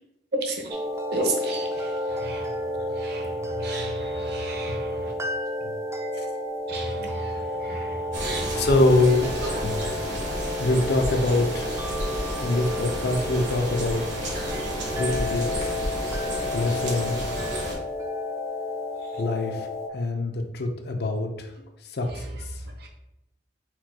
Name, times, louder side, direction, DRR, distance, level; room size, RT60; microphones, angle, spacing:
voice 1, 0.4-0.8 1.1-2.5 3.0-5.1 6.7-8.6 9.4-9.5 22.8-22.9, right 2 dB, 65° right, 2 dB, 0.8 m, -33 dB
sound 1, 0.7-19.9, left 1 dB, 15° right, 0.3 m, -31 dB
sound 2, 8.1-17.7, right 1 dB, 80° right, 1.3 m, -31 dB
voice 2, 8.5-9.4 9.6-9.8 10.6-11.7 12.1-14.3 14.9-15.7 16.5-17.2 19.2-19.7 19.9-21.5 21.8-22.6, left 2 dB, 65° left, 5 dB, 0.5 m, -25 dB
4.4 x 2.2 x 4.5 m, 0.91 s
head